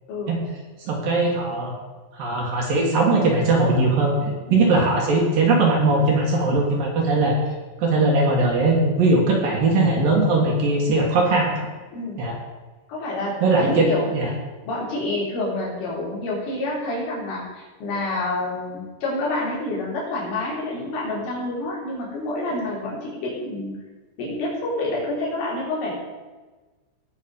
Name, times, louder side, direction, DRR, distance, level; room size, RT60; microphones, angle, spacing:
voice 1, 0.8-1.7 2.1-7.3 7.8-11.5 12.2-12.4 13.4-14.3, right 2 dB, 55° right, -1 dB, 3.0 m, -20 dB
voice 2, 12.9-14.1 14.7-23.7 24.2-25.9, left 2 dB, 85° left, -5 dB, 6.4 m, -28 dB
19.0 x 6.4 x 5.3 m, 1.3 s
omnidirectional pair, 5.5 m